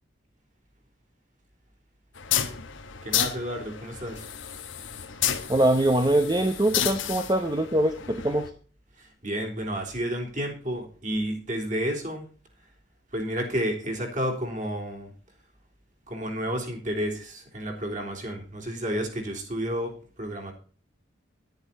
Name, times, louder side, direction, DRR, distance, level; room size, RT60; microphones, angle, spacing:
sound 1, 2.2-8.5, left 10 dB, 90° left, 1.7 m, -31 dB
voice 1, 3.0-4.3 9.0-12.3 13.1-15.1 16.1-19.9 20.2-20.5, equal, 40° right, 1 dB, 3.7 m, -31 dB
voice 2, 5.5-8.5, right 1 dB, 20° right, 7 dB, 0.9 m, -23 dB
11.0 x 10.5 x 4.2 m, 0.41 s
head